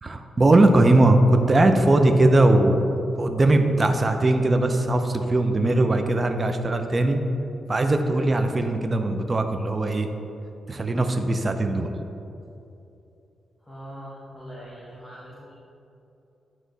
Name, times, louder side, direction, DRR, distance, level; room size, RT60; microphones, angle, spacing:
voice 1, 0.0-2.8 3.2-7.2 7.7-10.1 10.7-11.9, right 2 dB, 30° right, 6 dB, 0.5 m, -20 dB
voice 2, 13.6-15.6, equal, 10° left, -8 dB, 1.2 m, -42 dB
9.2 x 3.1 x 3.9 m, 2.8 s
cardioid pair, 95°, 0 cm